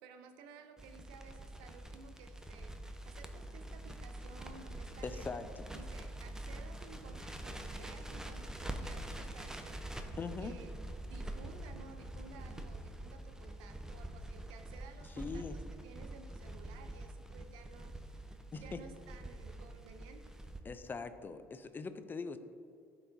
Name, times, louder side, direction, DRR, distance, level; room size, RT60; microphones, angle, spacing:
voice 1, 0.0-2.8 3.1-5.3 5.7-9.8 10.4-10.8 11.0-17.9 18.6-20.3, right 5 dB, 80° right, 7 dB, 0.6 m, -55 dB
Crackle, 0.8-20.6, right 1 dB, 10° right, 0.7 m, -45 dB
voice 2, 5.0-5.7 10.2-10.5 15.2-15.6 18.5-18.8 20.6-22.4, left 4 dB, 30° left, 10 dB, 0.5 m, -42 dB
11.5 x 4.6 x 2.7 m, 2.5 s
hypercardioid pair, 70°, 7 cm